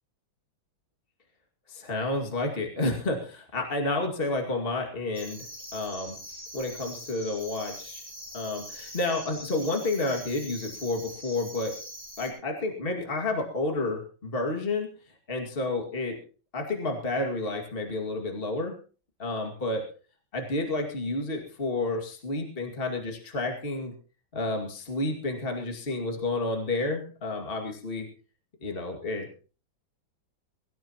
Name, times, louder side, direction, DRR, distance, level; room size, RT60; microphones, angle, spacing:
voice 1, 1.7-5.5 5.7-6.2 6.5-8.0 8.3-11.8 12.2-14.9 15.3-16.2 16.5-18.8 19.2-19.9 20.3-23.9 24.3-28.1 28.6-29.3, left 2 dB, 30° left, 2 dB, 2.4 m, -30 dB
sound 1, 5.1-12.3, equal, ahead, 7.3 m, -43 dB
23.0 x 14.5 x 3.0 m, 0.36 s
omnidirectional pair, 2.1 m